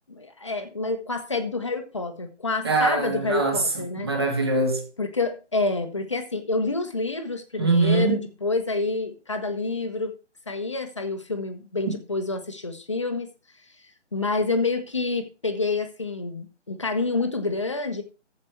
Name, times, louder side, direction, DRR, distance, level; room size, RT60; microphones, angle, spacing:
voice 1, 0.1-4.1 5.0-10.2 10.5-13.3 14.1-18.0, left 3 dB, 25° left, 1.1 m, -28 dB
voice 2, 2.6-3.6 3.9-4.8 7.6-8.1, right 3 dB, 20° right, 1.7 m, -22 dB
14.5 x 5.3 x 4.5 m
hypercardioid pair, 175°, 36 cm